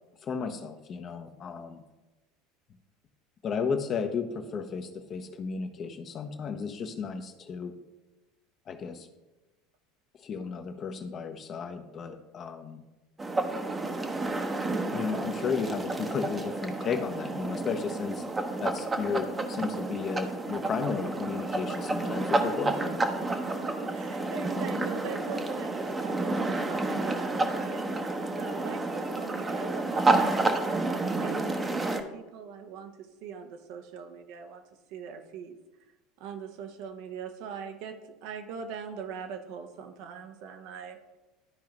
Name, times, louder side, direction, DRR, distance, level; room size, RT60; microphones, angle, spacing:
voice 1, 0.2-1.8 3.4-7.7 8.7-9.1 10.2-12.8 14.9-18.2 18.6-23.0, left 5 dB, 40° left, 7 dB, 0.8 m, -34 dB
sound 1, 13.2-32.0, right 2 dB, 20° right, 0.8 m, -30 dB
voice 2, 23.3-27.8 28.3-34.6 34.9-35.6 36.2-41.0, right 6 dB, 60° right, 6 dB, 0.8 m, -41 dB
12.5 x 4.7 x 3.0 m, 1.1 s
hypercardioid pair, 75°, 0 cm